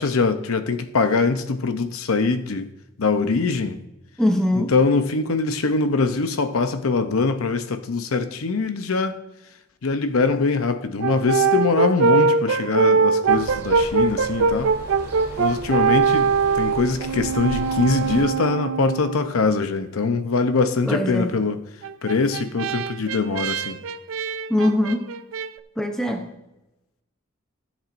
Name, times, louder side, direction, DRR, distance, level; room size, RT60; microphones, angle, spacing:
voice 1, 0.0-2.7 3.0-3.8 4.7-9.2 9.8-14.7 15.4-21.6 22.0-23.8, left 4 dB, 85° left, 0.7 m, -23 dB
voice 2, 4.2-4.8 20.8-21.3 24.5-25.2 25.8-26.4, left 1 dB, 5° left, 0.7 m, -22 dB
Brass instrument, 11.0-19.3 21.8-25.5, right 5 dB, 70° right, 0.4 m, -22 dB
sound 1, 13.3-18.2, right 1 dB, 10° right, 2.9 m, -37 dB
15.5 x 7.4 x 2.6 m
head